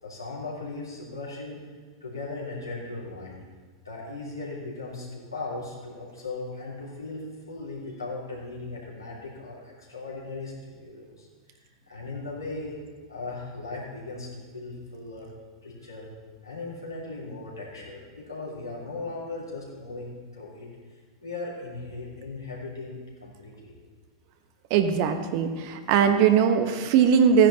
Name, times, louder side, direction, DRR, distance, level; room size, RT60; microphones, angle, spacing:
voice 1, 0.0-1.6 2.0-3.4 3.8-11.3 11.5-12.8 13.1-15.3 15.6-16.1 16.4-20.7 21.2-22.9 23.2-23.7, left 3 dB, 90° left, -6 dB, 3.3 m, -38 dB
voice 2, 24.7-27.5, right 7 dB, 50° right, 7 dB, 1.0 m, -20 dB
16.0 x 10.0 x 2.9 m, 1.5 s
figure-of-eight pair, 90°, 2 cm